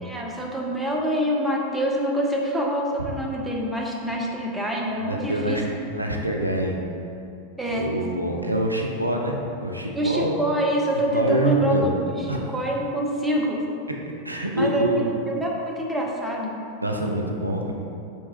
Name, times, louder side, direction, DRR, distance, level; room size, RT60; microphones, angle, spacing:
voice 1, 0.0-5.6 7.6-7.9 9.9-13.6 14.6-16.5, equal, 5° right, -2 dB, 0.5 m, -26 dB
voice 2, 4.9-5.6 5.9-6.7 7.7-9.3 9.6-10.3 11.1-11.9 12.3-12.5 14.2-15.0 16.8-17.7, right 1 dB, 85° right, 1 dB, 0.3 m, -25 dB
4.5 x 2.8 x 2.8 m, 2.6 s
figure-of-eight pair, 90°, 0 cm